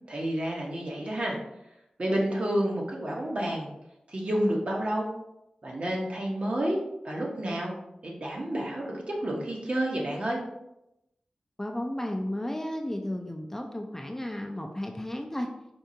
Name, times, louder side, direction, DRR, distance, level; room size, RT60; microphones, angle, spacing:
voice 1, 0.1-1.4 2.0-3.7 4.1-5.1 5.6-6.8 7.0-7.7 8.0-10.4, right 1 dB, 50° right, -2 dB, 0.9 m, -29 dB
voice 2, 11.6-15.5, left 1 dB, 15° left, 2 dB, 0.4 m, -33 dB
4.5 x 2.4 x 2.7 m, 0.87 s
wide cardioid pair, 60°, 3 cm